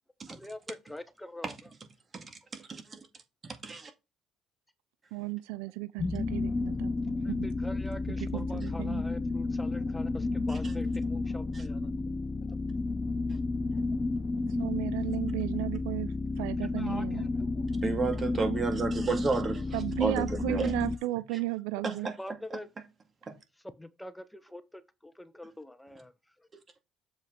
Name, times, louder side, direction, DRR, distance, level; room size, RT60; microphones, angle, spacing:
voice 1, 0.3-1.6 7.2-11.9 12.4-12.6 13.7-13.8 16.6-17.6 22.2-22.7 23.8-26.1 26.4-26.5, left 1 dB, 5° left, 1.0 m, -44 dB
voice 2, 2.1-3.1 3.4-3.9 11.5-11.6 13.3-13.4 17.8-19.8 20.0-20.7 21.8-22.2 22.5-22.6 23.3-23.4, right 4 dB, 35° right, 2.0 m, -32 dB
voice 3, 5.1-7.5 8.2-9.0 14.6-17.3 19.7-22.1, right 18 dB, 85° right, 0.3 m, -34 dB
sound 1, 6.0-21.0, left 3 dB, 30° left, 0.6 m, -32 dB
7.1 x 5.0 x 3.7 m
supercardioid pair, 65°, 0 cm